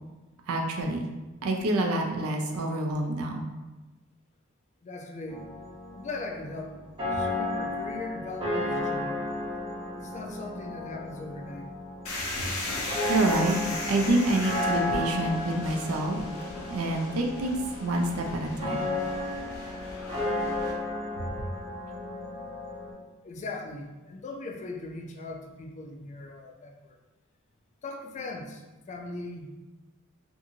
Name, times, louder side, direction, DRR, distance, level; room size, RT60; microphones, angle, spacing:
voice 1, 0.5-1.1 1.4-3.5 13.1-13.6 13.9-16.2 16.7-18.9 21.2-21.3, right 2 dB, 75° right, 2 dB, 0.4 m, -27 dB
voice 2, 4.8-5.5 5.9-6.7 7.1-9.2 10.0-11.7 21.2-21.4 21.9-22.2 23.2-27.0 27.8-29.6, left 2 dB, 35° left, 2 dB, 0.3 m, -39 dB
sound 1, 5.3-22.9, left 2 dB, 25° right, 0.9 m, -34 dB
sound 2, 12.1-20.7, left 2 dB, 80° left, 0.7 m, -38 dB
2.7 x 2.6 x 2.7 m, 1.1 s
head